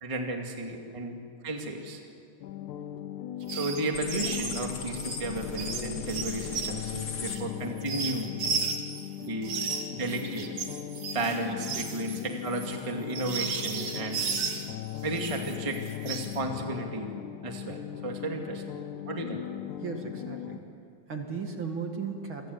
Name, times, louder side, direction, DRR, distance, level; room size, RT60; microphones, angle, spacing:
voice 1, 0.0-1.2 1.4-2.0 3.5-8.3 9.2-9.5 10.0-10.5 11.1-14.2 15.0-17.1 17.4-18.6 19.1-19.4, right 2 dB, 10° right, 2 dB, 1.8 m, -33 dB
sound 1, 2.4-20.6, left 11 dB, 80° left, 2.2 m, -39 dB
sound 2, 3.4-9.0 9.4-14.7 15.1-16.4, right 5 dB, 60° right, 3.2 m, -35 dB
sound 3, 3.9-7.4, left 5 dB, 45° left, 2.5 m, -38 dB
voice 2, 19.8-20.7 21.1-22.5, right 5 dB, 45° right, 3 dB, 2.6 m, -36 dB
28.5 x 24.0 x 8.1 m, 2.4 s
omnidirectional pair, 3.6 m